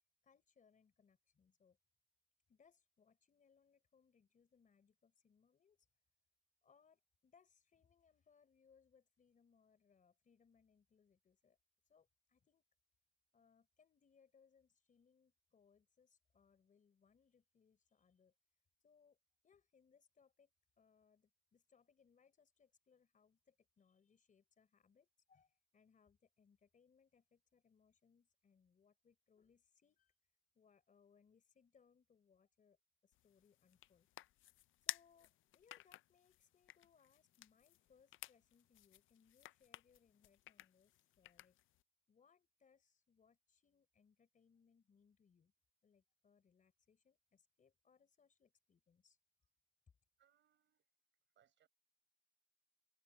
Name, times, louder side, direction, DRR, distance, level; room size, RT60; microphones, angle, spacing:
voice 1, 0.2-1.8 2.5-5.9 6.6-11.6 11.9-12.6 13.3-18.3 18.8-19.2 19.4-20.5 20.8-30.1 30.5-34.1 34.9-41.6 42.1-45.5 45.8-49.2, left 6 dB, 40° left, 4.0 m, -73 dB
sound 1, 33.1-41.8, left 15 dB, 75° left, 0.4 m, -54 dB
voice 2, 50.2-50.9 51.3-51.7, right 10 dB, 65° right, 5.1 m, -76 dB
cardioid pair, 145°, 20 cm